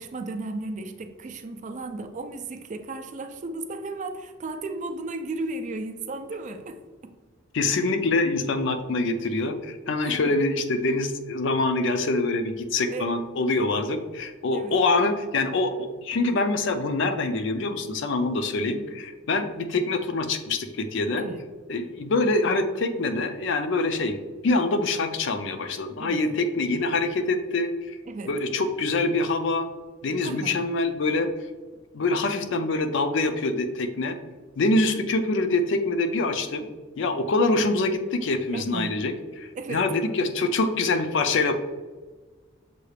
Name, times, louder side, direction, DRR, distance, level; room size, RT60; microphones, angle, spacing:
voice 1, 0.0-6.8 10.0-10.3 12.9-13.2 14.5-14.8 21.2-21.4 26.0-26.3 28.1-28.3 30.2-30.6 38.5-38.9 39.6-39.9, right 2 dB, 40° right, 7 dB, 0.4 m, -34 dB
voice 2, 7.5-21.2 21.7-24.2 24.4-28.0 28.3-29.7 30.0-31.3 31.9-34.2 34.6-36.7 37.0-39.1 39.4-41.5, left 2 dB, 65° left, 8 dB, 0.4 m, -25 dB
6.7 x 2.4 x 3.2 m, 1.3 s
head